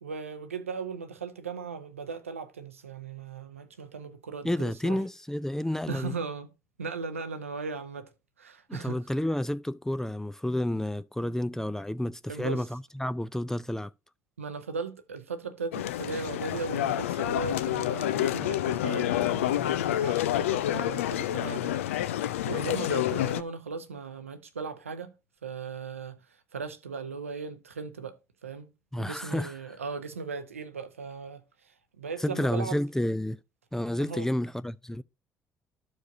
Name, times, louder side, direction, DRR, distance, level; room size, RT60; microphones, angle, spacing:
voice 1, 0.0-5.0 5.9-6.5 6.8-8.1 8.4-9.0 12.3-12.7 14.4-25.1 25.4-26.2 26.5-28.2 28.4-28.7 29.0-31.4 32.0-32.8 34.0-34.3, right 4 dB, 85° right, 0.6 m, -37 dB
voice 2, 4.4-6.2 8.7-13.9 28.9-29.5 32.2-33.4 33.7-35.0, left 1 dB, 5° left, 0.4 m, -30 dB
sound 1, 15.7-23.4, left 13 dB, 75° left, 0.4 m, -28 dB
13.5 x 4.7 x 2.6 m
figure-of-eight pair, 50°, 7 cm